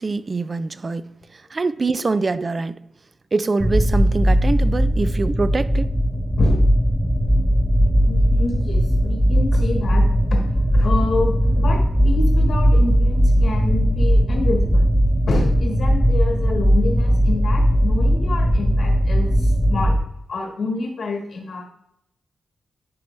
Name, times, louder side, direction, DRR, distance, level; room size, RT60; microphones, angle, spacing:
voice 1, 0.0-2.8 3.3-5.9, right 3 dB, 35° right, 0.4 m, -24 dB
sound 1, 3.6-20.0, equal, 5° left, 0.8 m, -18 dB
voice 2, 8.1-10.0 10.3-10.4 10.7-14.9 15.3-20.0 20.3-21.6, left 3 dB, 65° left, 1.4 m, -27 dB
11.0 x 4.4 x 3.1 m
cardioid pair, 80°, 0 cm